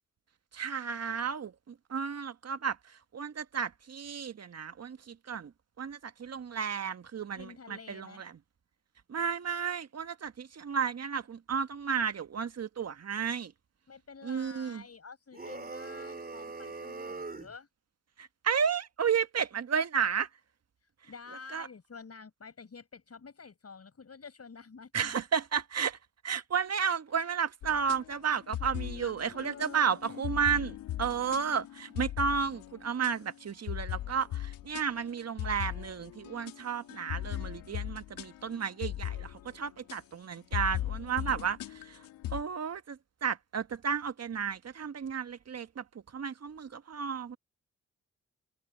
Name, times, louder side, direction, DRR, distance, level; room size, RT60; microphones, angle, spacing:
voice 1, 0.5-5.5 5.8-8.3 9.1-13.5 14.2-14.8 18.2-20.3 21.5-21.7 24.9-26.0 26.2-42.0 42.3-45.8 46.1-47.4, right 7 dB, 50° right, 1.6 m, -33 dB
voice 2, 7.4-8.2 13.9-17.7 21.0-25.2 28.9-30.0 40.7-41.3, left 5 dB, 45° left, 6.6 m, -49 dB
sound 1, 15.3-17.5, right 3 dB, 25° right, 3.9 m, -41 dB
sound 2, 27.6-33.3 33.7-40.0 40.3-42.4, left 13 dB, 80° left, 2.8 m, -38 dB
hypercardioid pair, 40°, 34 cm